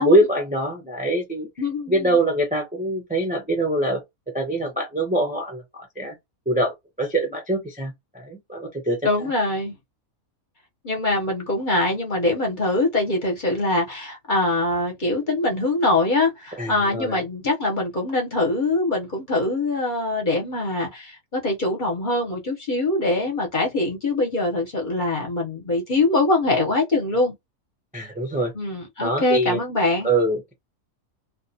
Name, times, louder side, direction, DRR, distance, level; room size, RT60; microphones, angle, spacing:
voice 1, 0.0-1.5 1.9-4.0 4.3-6.1 6.5-9.3 16.6-17.2 27.9-28.5 29.0-29.6 30.0-30.5, right 1 dB, 10° right, 0.4 m, -24 dB
voice 2, 1.6-2.2 9.0-9.7 10.8-27.3 28.5-30.1, left 2 dB, 40° left, 0.8 m, -23 dB
2.4 x 2.3 x 2.7 m
omnidirectional pair, 1.5 m